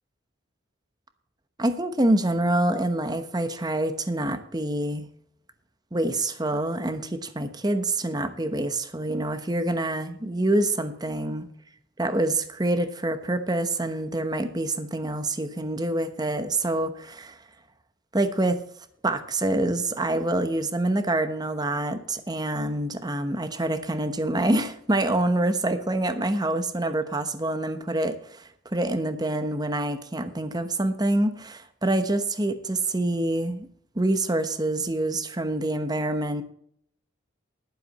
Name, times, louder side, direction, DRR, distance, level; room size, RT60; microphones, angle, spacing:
voice 1, 1.6-5.1 5.9-11.5 12.0-17.4 18.1-18.6 19.0-33.7 33.9-36.4, right 1 dB, 20° right, 10 dB, 0.9 m, -26 dB
11.0 x 10.0 x 4.2 m, 0.66 s
head